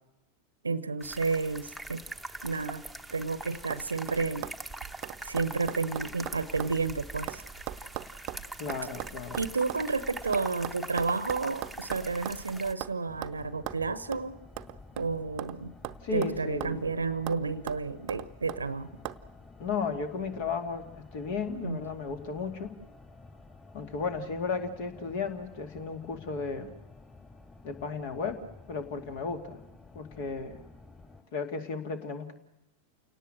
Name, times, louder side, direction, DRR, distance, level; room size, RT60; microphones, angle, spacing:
voice 1, 0.6-2.0 2.4-2.8 3.1-4.5 5.2-7.4 9.4-14.4 15.0-15.7 16.1-18.9 21.6-21.8, right 4 dB, 75° right, 16 dB, 0.8 m, -31 dB
sound 1, 1.0-12.7, right 2 dB, ahead, 1.2 m, -42 dB
sound 2, 2.9-3.3 3.7-3.8 4.1-6.8 7.0-9.8 10.3-12.5 12.8-13.0 13.2-13.4 13.7-13.8 14.1-14.2 14.6-15.6 15.8-16.9 17.3-17.4 17.7-18.6 19.0-19.2, right 15 dB, 40° right, 0.8 m, -39 dB
voice 2, 8.6-9.4 16.0-16.8 19.6-22.7 23.7-26.8 27.6-29.6 29.9-30.6 31.3-32.3, left 5 dB, 50° left, 7 dB, 2.5 m, -34 dB
sound 3, 13.1-31.2, left 3 dB, 15° left, 4.0 m, -52 dB
29.0 x 18.5 x 7.8 m, 0.94 s
figure-of-eight pair, 90°, 0 cm